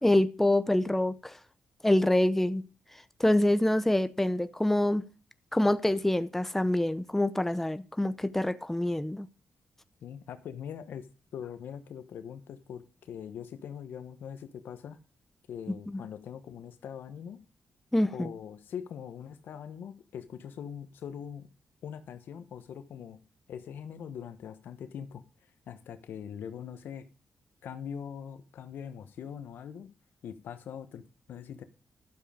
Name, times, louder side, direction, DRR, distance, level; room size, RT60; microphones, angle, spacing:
voice 1, 0.0-1.4 1.8-2.6 3.2-5.0 5.5-9.3 15.9-16.0 17.9-18.3, left 1 dB, 10° left, 0.7 m, -26 dB
voice 2, 10.0-11.1 11.3-15.0 15.5-17.4 18.1-21.5 21.8-23.2 23.5-25.2 25.7-27.0 27.6-29.9 30.2-31.6, left 8 dB, 90° left, 1.2 m, -42 dB
12.0 x 7.5 x 5.1 m
cardioid pair, 95°, 3 cm